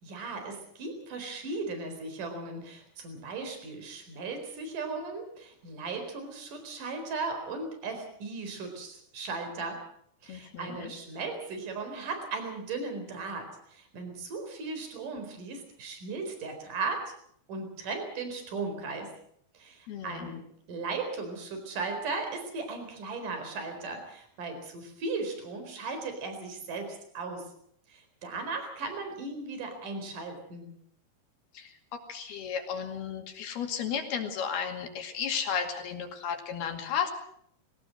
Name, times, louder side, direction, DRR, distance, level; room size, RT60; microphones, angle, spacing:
voice 1, 0.0-9.8 10.2-17.1 17.5-19.1 19.5-20.4 20.7-27.5 27.9-30.7, right 3 dB, 50° right, 6 dB, 5.7 m, -37 dB
voice 2, 10.3-10.9 19.9-20.3 31.5-37.1, left 7 dB, 70° left, 5 dB, 4.2 m, -34 dB
21.5 x 18.5 x 7.8 m, 0.68 s
omnidirectional pair, 4.8 m